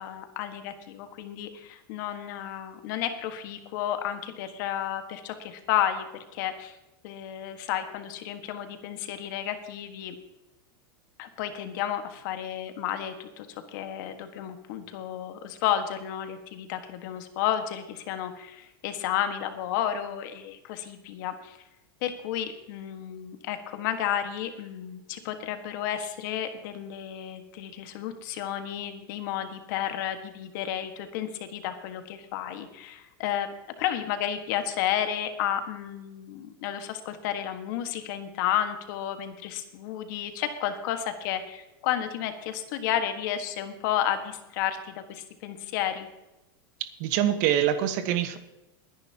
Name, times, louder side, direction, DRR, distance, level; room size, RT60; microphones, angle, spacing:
voice 1, 0.0-6.8 7.0-10.2 11.2-21.6 22.0-33.5 33.8-46.1, left 10 dB, 55° left, 7 dB, 1.6 m, -32 dB
voice 2, 46.8-48.4, right 11 dB, 50° right, 9 dB, 1.3 m, -25 dB
21.5 x 10.5 x 2.9 m, 0.98 s
supercardioid pair, 155°, 12 cm